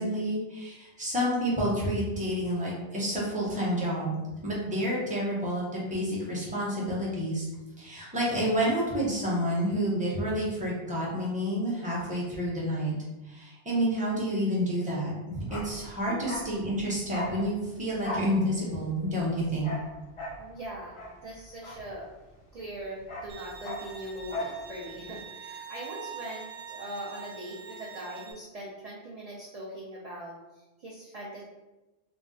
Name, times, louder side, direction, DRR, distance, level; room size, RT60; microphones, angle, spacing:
voice 1, 0.0-4.1 4.4-7.5 7.8-12.9 13.2-19.7, equal, 10° right, -6 dB, 0.6 m, -29 dB
Bark, 15.4-22.4 22.7-24.6 24.9-25.0, left 1 dB, 40° left, 0.5 m, -39 dB
voice 2, 20.4-21.0 21.2-22.1 22.5-31.4, right 1 dB, 50° right, -4 dB, 0.4 m, -41 dB
Bowed string instrument, 23.3-28.3, right 6 dB, 70° right, 0.8 m, -44 dB
2.3 x 2.2 x 3.8 m, 1.1 s
omnidirectional pair, 1.1 m